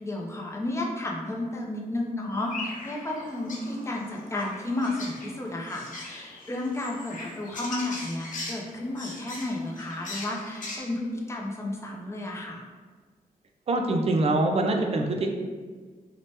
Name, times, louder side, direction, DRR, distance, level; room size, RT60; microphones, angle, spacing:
voice 1, 0.0-12.6, left 2 dB, 20° left, -1 dB, 0.5 m, -32 dB
sound 1, 2.4-10.8, left 2 dB, 60° left, 0.6 m, -40 dB
voice 2, 13.7-15.3, right 2 dB, 45° right, 3 dB, 0.4 m, -24 dB
2.7 x 2.1 x 3.2 m, 1.5 s
wide cardioid pair, 95°, 15 cm